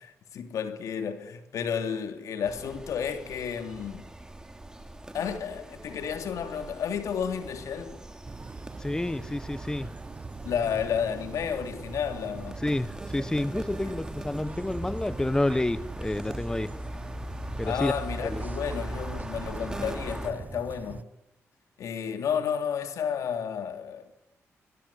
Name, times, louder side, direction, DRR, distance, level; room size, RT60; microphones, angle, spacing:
voice 1, 0.0-4.1 5.1-8.0 10.4-12.6 13.8-13.9 17.6-21.1 21.8-24.1, left 7 dB, 80° left, 3.1 m, -32 dB
sound 1, 2.4-20.3, right 1 dB, 10° right, 3.6 m, -40 dB
sound 2, 8.3-21.0, right 4 dB, 30° right, 1.0 m, -42 dB
voice 2, 8.8-9.9 12.6-16.7 17.6-17.9 18.2-18.4, left 1 dB, 15° left, 1.1 m, -29 dB
24.5 x 22.0 x 8.6 m
cardioid pair, 75°, 5 cm